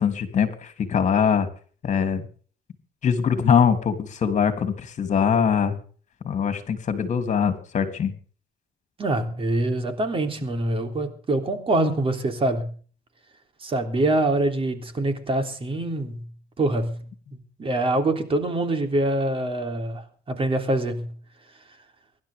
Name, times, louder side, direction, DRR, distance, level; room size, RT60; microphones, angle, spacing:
voice 1, 0.0-1.5 1.8-2.2 3.0-5.7 6.2-8.1, left 7 dB, 45° left, 3.1 m, -22 dB
voice 2, 9.0-12.7 13.6-16.3 16.6-17.0 17.6-21.1, right 2 dB, 30° right, 3.3 m, -25 dB
24.5 x 12.0 x 3.7 m
cardioid pair, 110°, 17 cm